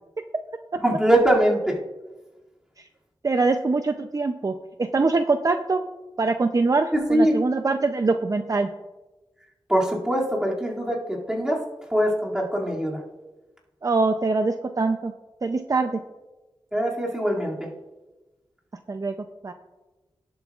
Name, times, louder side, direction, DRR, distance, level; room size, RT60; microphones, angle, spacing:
voice 1, 0.8-1.8 6.9-7.4 9.7-11.6 11.9-13.0 16.7-17.7, right 1 dB, 10° right, -4 dB, 2.4 m, -22 dB
voice 2, 3.2-4.5 4.9-5.8 6.2-8.7 13.8-15.1 15.4-16.0 18.9-19.1 19.4-19.5, right 3 dB, 40° right, 7 dB, 0.5 m, -23 dB
18.5 x 7.9 x 2.4 m, 1.1 s
wide cardioid pair, 100°, 9 cm